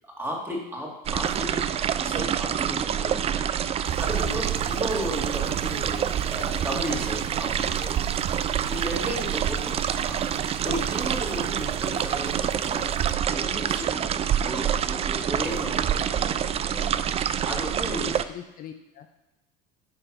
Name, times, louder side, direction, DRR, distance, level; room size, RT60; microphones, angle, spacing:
voice 1, 0.0-1.7 2.0-3.5 4.0-8.2 8.7-10.3 10.6-13.0 13.2-18.2, right 1 dB, 10° right, -2 dB, 2.3 m, -34 dB
sound 1, 1.0-18.2, right 9 dB, 30° right, 0.4 m, -27 dB
sound 2, 3.8-13.1, right 13 dB, 85° right, 0.6 m, -40 dB
sound 3, 8.0-18.3, right 6 dB, 70° right, 1.2 m, -53 dB
voice 2, 17.8-19.1, left 10 dB, 45° left, 7 dB, 0.6 m, -40 dB
9.0 x 3.3 x 6.1 m, 1.0 s
supercardioid pair, 100°, 20 cm